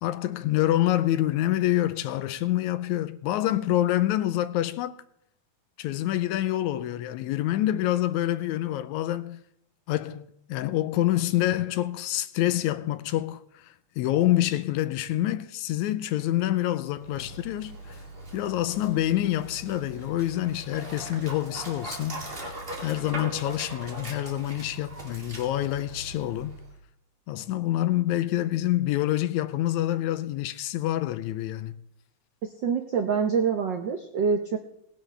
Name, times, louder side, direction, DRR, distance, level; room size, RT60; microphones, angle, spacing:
voice 1, 0.0-5.0 5.8-9.4 9.9-13.6 14.0-17.8 18.3-22.2 22.8-26.6 27.3-31.8, left 14 dB, 85° left, 2.0 m, -27 dB
Dog, 16.9-26.8, right 1 dB, 20° right, 1.9 m, -40 dB
voice 2, 32.6-34.6, right 6 dB, 80° right, 1.0 m, -25 dB
19.0 x 11.0 x 3.3 m
omnidirectional pair, 3.3 m